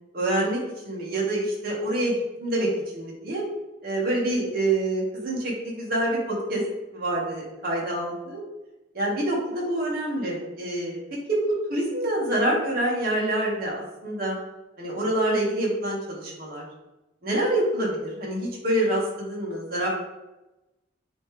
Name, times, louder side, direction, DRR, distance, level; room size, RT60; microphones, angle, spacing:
voice 1, 0.1-0.6 0.8-3.4 3.8-6.6 6.9-8.4 8.9-11.0 11.3-11.4 11.7-13.8 14.0-14.4 14.8-16.6 17.2-19.9, right 1 dB, 50° right, -4 dB, 1.9 m, -26 dB
8.6 x 3.3 x 3.4 m, 1.0 s
head